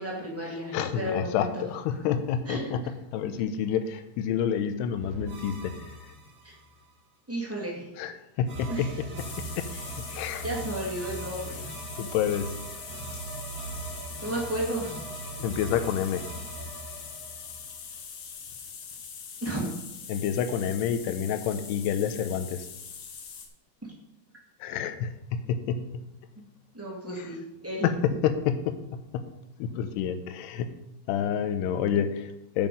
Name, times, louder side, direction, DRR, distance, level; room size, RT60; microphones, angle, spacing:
voice 1, 0.0-1.6 2.4-2.8 6.4-6.5 7.3-7.9 8.7-8.9 9.7-9.9 10.4-11.7 14.2-15.0 19.4-19.7 26.7-27.4 27.6-27.9, right 1 dB, 25° right, -4 dB, 0.3 m, -33 dB
voice 2, 0.7-2.8 3.1-5.9 8.0-9.3 9.6-9.7 10.1-10.5 12.0-12.5 15.4-16.2 20.1-22.7 24.6-26.0 27.8-28.8 29.1-29.2 29.6-30.7 31.1-32.7, left 8 dB, 85° left, 8 dB, 2.7 m, -28 dB
Jump scare sounds and music, 5.0-6.8 8.5-18.2, right 2 dB, 75° right, 0.8 m, -40 dB
sound 1, 9.2-23.5, left 6 dB, 65° left, 3.0 m, -42 dB
8.8 x 5.4 x 7.6 m, 0.86 s
omnidirectional pair, 4.8 m